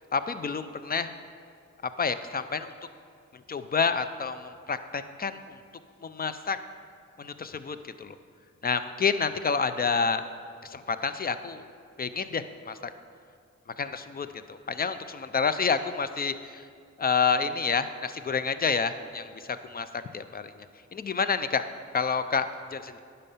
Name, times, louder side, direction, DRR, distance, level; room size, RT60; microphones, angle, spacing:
voice 1, 0.1-1.1 2.0-2.7 3.5-5.4 6.0-6.6 7.2-8.1 8.6-10.2 10.6-11.7 12.0-12.9 13.8-16.6 17.0-20.5 20.9-21.6 21.9-23.0, left 5 dB, 30° left, 11 dB, 0.5 m, -29 dB
10.5 x 5.6 x 5.6 m, 2.2 s
cardioid pair, 70°, 30 cm